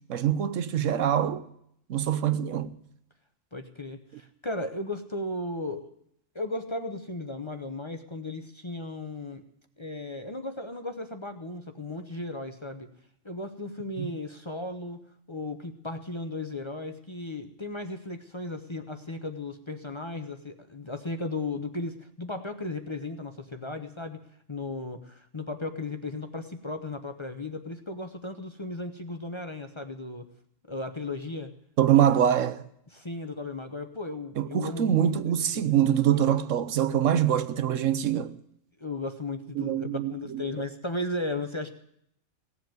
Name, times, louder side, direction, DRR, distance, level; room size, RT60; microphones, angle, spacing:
voice 1, 0.1-1.4 1.9-2.7 14.0-14.1 31.8-32.6 34.4-38.3 39.6-40.4, right 10 dB, 70° right, 1.1 m, -24 dB
voice 2, 3.5-5.9 6.3-9.4 9.8-12.9 13.2-15.0 15.3-24.2 24.5-30.3 30.7-31.5 32.9-35.1 35.5-35.7 38.8-41.7, left 2 dB, 25° left, 0.9 m, -35 dB
17.5 x 7.7 x 9.2 m
omnidirectional pair, 1.4 m